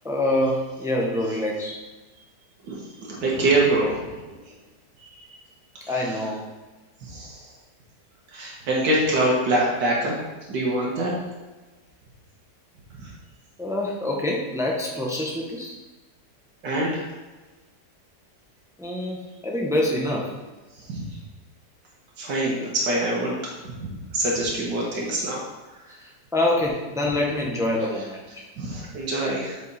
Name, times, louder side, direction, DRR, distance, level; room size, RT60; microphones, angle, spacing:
voice 1, 0.0-1.8 5.9-6.5 13.6-15.7 18.8-20.3 26.3-28.5, left 1 dB, 5° right, -1 dB, 0.6 m, -25 dB
voice 2, 2.7-4.0 5.0-5.2 5.8-6.0 7.0-7.5 8.3-10.1 10.5-11.1 13.0-13.1 16.6-17.1 20.8-21.0 22.2-23.3 23.8-25.4 28.6-29.6, right 1 dB, 85° right, -4 dB, 1.9 m, -25 dB
7.5 x 5.2 x 4.1 m, 1.2 s
omnidirectional pair, 1.8 m